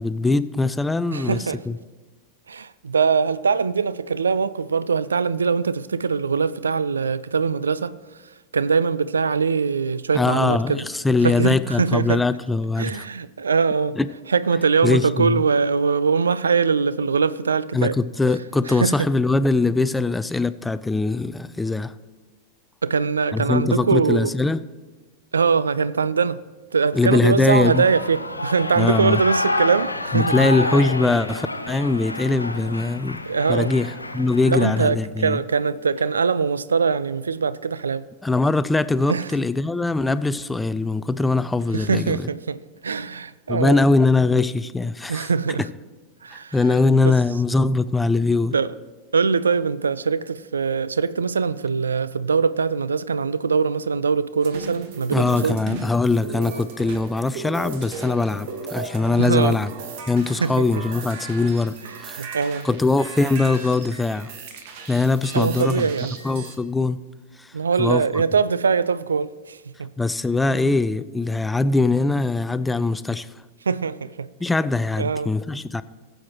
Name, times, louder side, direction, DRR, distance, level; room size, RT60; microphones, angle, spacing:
voice 1, 0.0-1.8 10.1-13.1 14.0-14.1 14.8-15.4 17.7-21.9 23.3-24.6 26.9-27.9 28.8-29.2 30.1-33.2 33.5-35.4 38.2-42.3 43.5-45.3 45.6-45.7 46.3-48.5 55.1-59.7 60.1-61.8 62.0-62.2 62.6-64.3 64.9-65.9 66.2-67.0 67.4-67.5 67.8-68.0 70.0-73.3 74.4-75.8, left 3 dB, 10° left, 0.4 m, -21 dB
voice 2, 1.1-1.6 2.5-8.0 8.5-10.8 11.2-12.2 12.8-14.0 14.3-18.0 18.7-19.0 22.8-24.3 25.3-26.4 26.7-30.5 33.3-33.7 34.5-38.0 39.1-39.3 41.7-43.9 45.1-45.7 46.2-46.6 47.0-47.1 48.5-48.7 49.1-55.6 59.2-59.6 60.4-60.7 62.2-62.7 65.3-66.2 67.5-69.9 73.7-74.3 75.0-75.3, right 5 dB, 70° right, 0.3 m, -22 dB
Shout / Cheering, 27.2-34.9, left 2 dB, 85° left, 0.7 m, -29 dB
sound 1, 54.4-66.6, right 4 dB, 50° right, 1.3 m, -36 dB
20.0 x 7.8 x 3.0 m
figure-of-eight pair, 90°, 0 cm